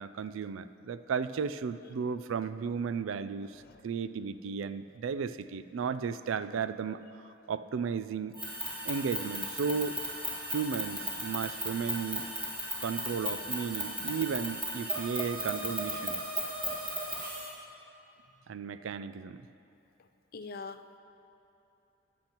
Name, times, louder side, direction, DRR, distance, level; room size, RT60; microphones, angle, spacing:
voice 1, 0.0-7.0 7.5-8.4 8.8-10.0 10.5-12.3 12.8-16.2 18.5-19.4, right 6 dB, 75° right, 13 dB, 0.3 m, -34 dB
sound 1, 8.3-17.5, equal, 25° right, 2.0 m, -36 dB
voice 2, 20.3-21.0, left 4 dB, 45° left, 10 dB, 0.4 m, -42 dB
15.5 x 10.5 x 3.0 m, 2.9 s
head